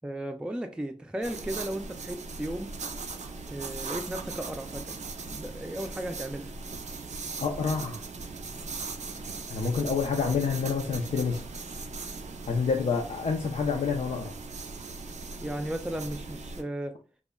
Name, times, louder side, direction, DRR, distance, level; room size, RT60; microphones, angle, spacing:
voice 1, 0.0-2.7 3.5-5.0 5.3-6.5 15.4-16.9, right 1 dB, 10° right, 0.3 m, -35 dB
sound 1, 1.2-16.6, right 4 dB, 85° right, 0.4 m, -39 dB
voice 2, 7.4-8.0 9.5-11.4 12.5-14.3, left 5 dB, 90° left, 0.4 m, -28 dB
2.1 x 2.1 x 3.5 m
cardioid pair, 45°, 12 cm